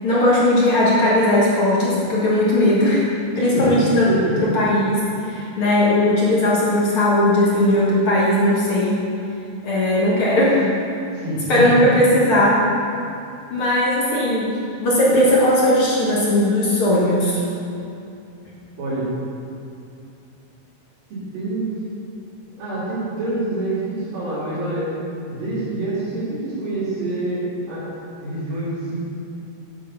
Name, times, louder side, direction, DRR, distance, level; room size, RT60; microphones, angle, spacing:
voice 1, 0.0-3.0 3.4-4.1 4.4-9.0 9.6-10.7 11.5-12.6 13.5-17.4, left 1 dB, 50° left, -6 dB, 1.9 m, -18 dB
voice 2, 11.1-11.6 18.8-19.1 21.1-21.7 22.6-24.9 25.3-27.8 28.2-29.0, right 2 dB, 80° right, -11 dB, 4.6 m, -26 dB
8.8 x 7.3 x 5.8 m, 2.6 s
omnidirectional pair, 4.0 m